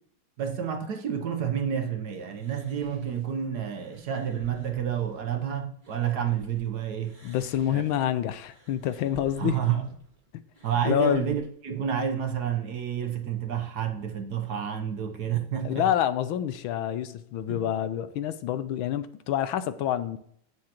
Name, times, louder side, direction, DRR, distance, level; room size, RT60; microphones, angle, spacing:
voice 1, 0.4-7.2 7.7-7.8 9.4-9.9 10.6-15.9 17.5-17.7, right 8 dB, 60° right, 1.2 m, -29 dB
sound 1, 2.3-6.7 7.0-11.5, right 3 dB, 25° right, 1.8 m, -55 dB
voice 2, 7.2-9.6 10.3-10.4 10.8-11.4 15.6-20.2, left 11 dB, 80° left, 1.4 m, -27 dB
17.0 x 6.5 x 2.9 m
omnidirectional pair, 2.3 m